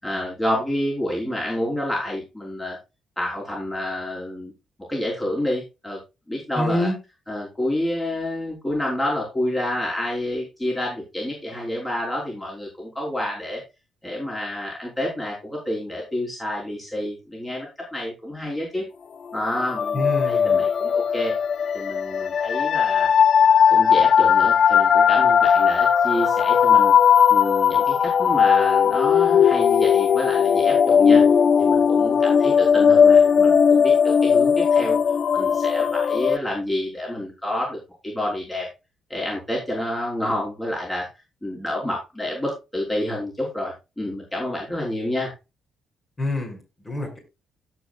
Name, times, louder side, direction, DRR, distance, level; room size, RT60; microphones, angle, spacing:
voice 1, 0.0-2.8 3.2-4.5 4.9-6.0 6.3-6.9 7.3-13.6 14.0-18.8 19.3-21.3 21.7-23.1 23.7-26.9 27.3-31.2 31.6-35.0 35.3-38.7 39.1-41.1 41.4-45.3, left 1 dB, 15° left, -4 dB, 5.1 m, -28 dB
voice 2, 6.5-6.9 19.9-20.6 46.2-47.2, left 1 dB, 30° left, 1 dB, 6.7 m, -26 dB
sound 1, 19.6-36.4, left 7 dB, 55° left, 0.5 m, -17 dB
17.0 x 6.2 x 2.4 m, 0.26 s
hypercardioid pair, 45°, 0 cm